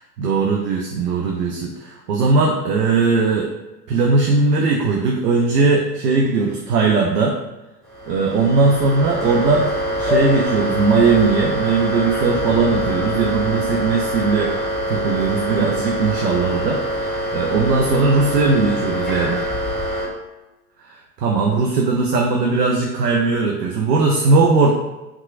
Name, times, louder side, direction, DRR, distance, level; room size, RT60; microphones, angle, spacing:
voice 1, 0.2-3.5 3.9-7.4 8.1-9.7 10.0-14.5 14.9-19.4 20.8-24.7, right 4 dB, 75° right, 0 dB, 0.6 m, -19 dB
sound 1, 7.8-20.1, equal, ahead, 0.5 m, -24 dB
3.5 x 3.0 x 2.4 m, 1.0 s
figure-of-eight pair, 100°, 48 cm